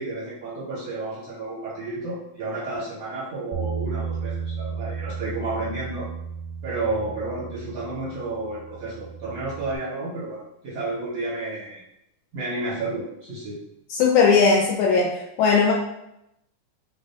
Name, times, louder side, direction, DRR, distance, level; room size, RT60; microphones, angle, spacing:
voice 1, 0.0-6.1 6.6-11.8 12.3-13.6, right 2 dB, 65° right, -7 dB, 1.0 m, -31 dB
Bass guitar, 3.5-9.8, right 6 dB, 85° right, 2.1 m, -34 dB
voice 2, 14.0-15.1 15.4-15.7, left 5 dB, 80° left, -1 dB, 1.8 m, -17 dB
5.2 x 2.1 x 2.7 m, 0.83 s
omnidirectional pair, 3.5 m